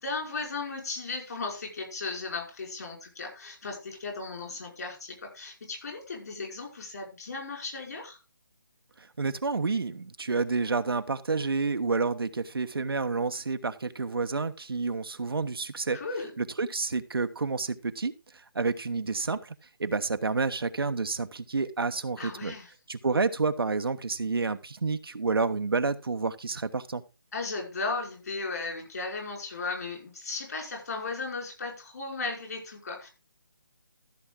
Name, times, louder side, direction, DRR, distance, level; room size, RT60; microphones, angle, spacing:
voice 1, 0.0-8.2 15.9-16.3 22.2-22.7 27.3-33.1, left 3 dB, 45° left, 5.3 m, -36 dB
voice 2, 9.2-16.0 16.4-18.1 18.5-19.5 19.8-22.5 22.9-27.0, right 4 dB, 85° right, 1.1 m, -29 dB
14.0 x 7.2 x 3.7 m
hypercardioid pair, 170°, 12 cm